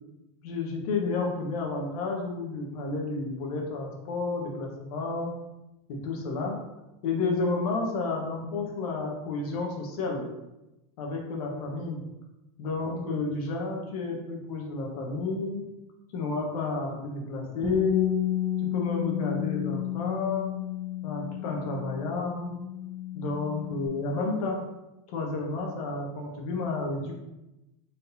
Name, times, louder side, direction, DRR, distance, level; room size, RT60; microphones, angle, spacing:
voice 1, 0.4-5.3 5.9-6.6 7.0-10.2 11.0-12.0 12.6-15.6 16.1-18.2 18.7-20.6 21.0-22.6 23.1-24.6 25.1-27.1, left 3 dB, 75° left, 0 dB, 1.2 m, -31 dB
Bass guitar, 17.6-23.9, left 11 dB, 35° right, 0.9 m, -32 dB
4.3 x 3.8 x 2.7 m, 0.96 s
supercardioid pair, 150°, 19 cm